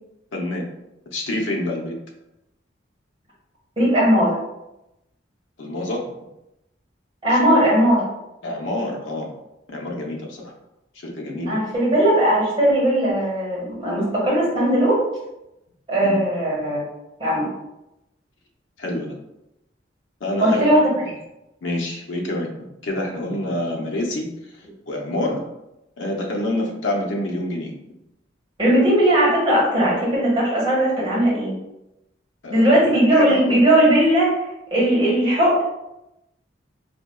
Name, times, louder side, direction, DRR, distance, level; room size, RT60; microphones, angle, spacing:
voice 1, 0.3-0.7 1.1-1.9 5.6-6.0 8.4-9.3 9.7-10.4 11.0-11.6 16.0-16.2 18.8-19.1 20.2-20.8 21.0-21.1 21.6-22.5 22.8-24.3 24.9-25.4 26.0-27.7 32.4-32.7 33.1-33.6, left 1 dB, 85° left, 0 dB, 0.7 m, -27 dB
voice 2, 3.8-4.4 7.2-8.0 11.5-15.0 15.9-16.8 17.2-17.5 20.4-20.9 28.6-31.5 32.5-34.3 34.7-35.6, right 1 dB, 25° right, -7 dB, 1.5 m, -18 dB
4.3 x 2.7 x 2.2 m, 0.90 s
head